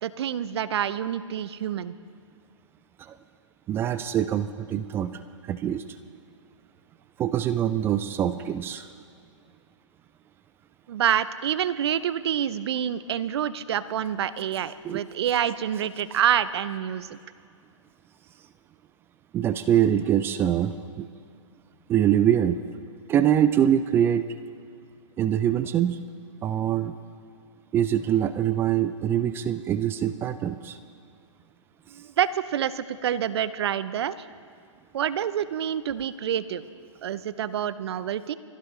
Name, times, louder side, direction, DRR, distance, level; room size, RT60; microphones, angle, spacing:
voice 1, 0.0-1.9 10.9-17.2 31.9-34.3 34.9-36.6 37.0-38.3, right 9 dB, 50° right, 15 dB, 0.7 m, -27 dB
voice 2, 3.7-5.2 5.4-5.8 7.2-8.9 14.8-15.0 19.3-21.1 21.9-22.6 23.1-24.3 25.2-26.0 26.4-27.0 27.7-30.8, right 10 dB, 15° right, 12 dB, 0.4 m, -24 dB
24.0 x 15.5 x 3.3 m, 2.3 s
hypercardioid pair, 130°, 17 cm